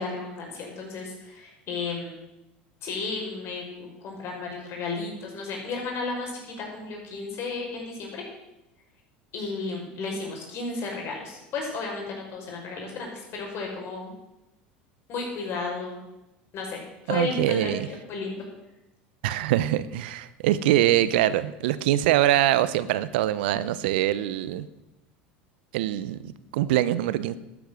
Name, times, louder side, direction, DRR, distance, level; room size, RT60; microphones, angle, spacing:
voice 1, 0.0-2.2 2.8-8.3 9.3-14.1 15.1-16.0 16.5-16.8 17.0-18.4, left 4 dB, 50° left, 0 dB, 5.6 m, -33 dB
voice 2, 17.1-17.9 19.2-24.7 25.7-27.3, right 13 dB, 70° right, 16 dB, 0.7 m, -24 dB
12.0 x 10.5 x 6.3 m, 0.94 s
hypercardioid pair, 85°, 6 cm